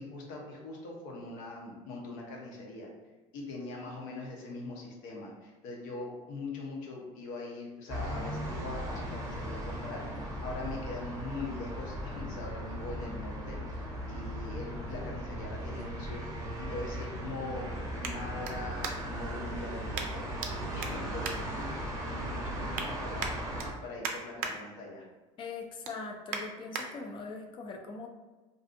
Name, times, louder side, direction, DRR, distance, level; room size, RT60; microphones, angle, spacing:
voice 1, 0.0-2.9 3.3-17.7 17.9-20.3 20.7-21.8 22.0-23.3 23.8-25.1, left 2 dB, 75° left, -1 dB, 0.7 m, -42 dB
sound 1, 7.9-23.7, equal, 25° right, 0.6 m, -37 dB
sound 2, 18.0-19.3 19.9-20.5 20.8-22.1 22.5-22.9 23.2-24.5 25.0-25.2 25.6-26.9 27.4-27.5, right 5 dB, 65° right, 0.4 m, -40 dB
voice 2, 25.4-28.1, left 4 dB, 35° left, 3 dB, 0.4 m, -41 dB
2.5 x 2.4 x 2.5 m, 1.2 s
supercardioid pair, 120°, 15 cm